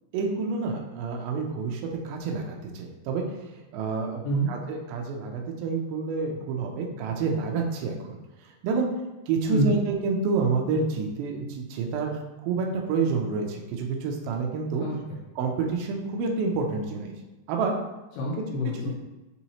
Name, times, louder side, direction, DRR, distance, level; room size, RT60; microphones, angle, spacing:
voice 1, 0.1-3.2 3.5-4.2 4.5-8.2 8.4-8.9 9.3-12.1 12.4-14.9 15.4-17.1 17.5-17.7 18.8-18.9, right 4 dB, 80° right, 1 dB, 2.1 m, -28 dB
voice 2, 14.8-15.2 18.2-18.9, right 1 dB, 80° left, -5 dB, 2.6 m, -27 dB
6.1 x 2.9 x 2.8 m, 1.1 s
omnidirectional pair, 4.8 m